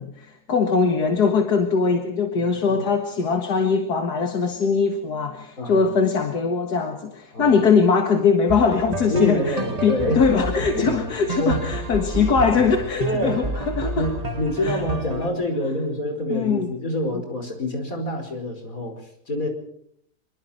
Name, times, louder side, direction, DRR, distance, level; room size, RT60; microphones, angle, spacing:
voice 1, 0.0-14.1 14.6-14.8 16.3-16.7 17.1-17.2, left 5 dB, 80° left, 5 dB, 2.2 m, -21 dB
voice 2, 5.6-5.9 7.3-7.6 9.0-10.9 11.4-11.6 13.0-13.4 13.9-19.5, left 1 dB, 60° left, 4 dB, 5.4 m, -26 dB
sound 1, 8.5-15.3, right 2 dB, 25° right, 1.7 m, -30 dB
25.0 x 23.5 x 4.4 m, 0.67 s
omnidirectional pair, 1.7 m